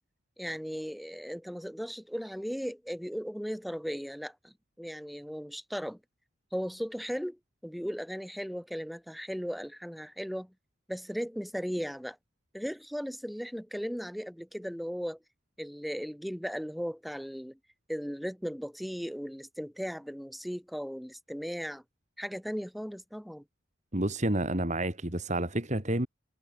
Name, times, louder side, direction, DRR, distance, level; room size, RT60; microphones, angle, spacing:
voice 1, 0.4-6.0 6.5-10.5 10.9-12.2 12.5-15.2 15.6-17.6 17.9-21.8 22.2-23.4, equal, ahead, 6.0 m, -37 dB
voice 2, 23.9-26.1, right 1 dB, 35° right, 2.7 m, -29 dB
head